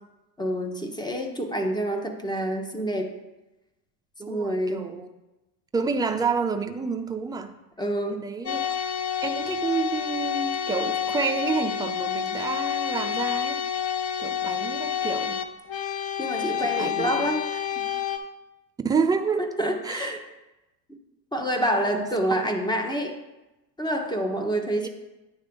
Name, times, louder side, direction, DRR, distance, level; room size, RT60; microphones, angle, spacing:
voice 1, 0.4-3.1 4.3-4.9 7.8-8.2 16.2-17.8 19.4-20.2 21.3-23.2 23.8-24.9, equal, 10° left, 4 dB, 1.0 m, -27 dB
voice 2, 4.2-5.1 5.7-7.5 8.1-8.7 9.2-13.6 14.2-15.4 16.6-17.2 18.8-19.5 19.8-20.1 21.9-22.4 24.8-24.9, right 5 dB, 10° right, 6 dB, 0.4 m, -29 dB
sound 1, 8.5-18.2, left 8 dB, 30° left, 0.6 m, -29 dB
9.6 x 3.3 x 5.2 m, 1.0 s
hypercardioid pair, 90°, 49 cm